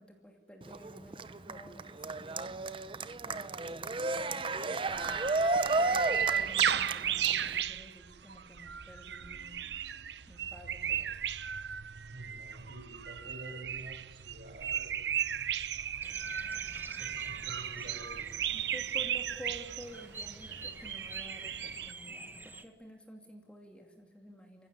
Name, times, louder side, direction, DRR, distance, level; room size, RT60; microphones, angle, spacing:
voice 1, 0.0-4.5 4.9-5.2 5.8-9.6 10.3-11.3 18.5-24.7, equal, 5° left, 2 dB, 2.4 m, -52 dB
Cheering, 0.6-7.6, right 3 dB, 30° right, 0.7 m, -33 dB
sound 1, 4.9-21.9, right 9 dB, 75° right, 0.7 m, -35 dB
voice 2, 12.1-15.1 16.9-18.4, right 1 dB, 55° right, 6 dB, 5.4 m, -49 dB
Bird vocalization bird call bird song, 16.0-22.6, right 2 dB, 10° right, 1.4 m, -48 dB
29.5 x 15.5 x 9.9 m, 1.4 s
head